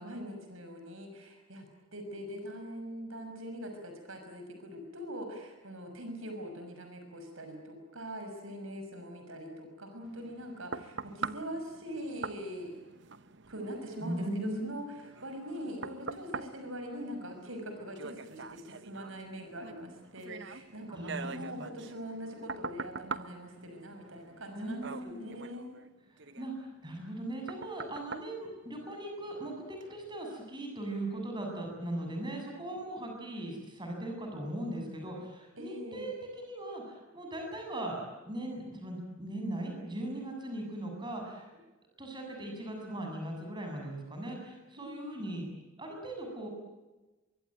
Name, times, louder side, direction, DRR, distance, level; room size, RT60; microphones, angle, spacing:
voice 1, 0.0-12.8 13.5-25.7 35.6-36.1 44.8-44.9 45.2-45.3, equal, 75° right, 5 dB, 6.0 m, -42 dB
sound 1, 10.0-29.3 29.8-29.9, right 4 dB, 55° right, 1.0 m, -44 dB
voice 2, 14.0-14.6 20.9-21.7 24.5-25.2 26.4-36.1 36.4-38.0 38.2-41.5 42.0-45.5 45.8-46.5, right 1 dB, 20° right, 2 dB, 7.7 m, -39 dB
24.0 x 24.0 x 9.1 m, 1.1 s
head